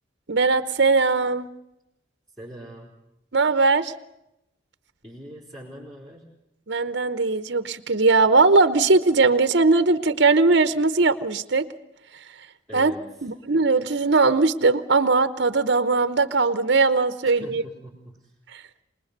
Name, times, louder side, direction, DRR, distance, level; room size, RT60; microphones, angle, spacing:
voice 1, 0.3-1.5 3.3-3.9 6.7-11.7 12.7-12.9 13.2-17.6 18.5-18.6, right 3 dB, 60° right, 12 dB, 0.9 m, -20 dB
voice 2, 2.4-2.9 5.0-6.3 12.7-13.3 17.4-18.3, equal, 5° left, -7 dB, 4.2 m, -42 dB
25.5 x 20.0 x 6.7 m, 0.86 s
head